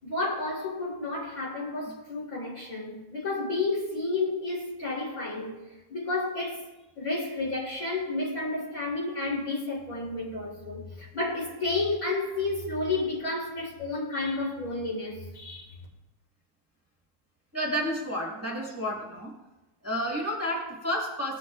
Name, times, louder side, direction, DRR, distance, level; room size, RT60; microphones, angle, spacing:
voice 1, 0.0-5.6 5.9-6.6 7.0-15.7, left 3 dB, 65° left, -4 dB, 3.9 m, -31 dB
voice 2, 17.5-19.3 19.8-21.4, equal, 10° right, -3 dB, 1.7 m, -31 dB
18.0 x 9.9 x 2.4 m, 1.0 s
omnidirectional pair, 1.6 m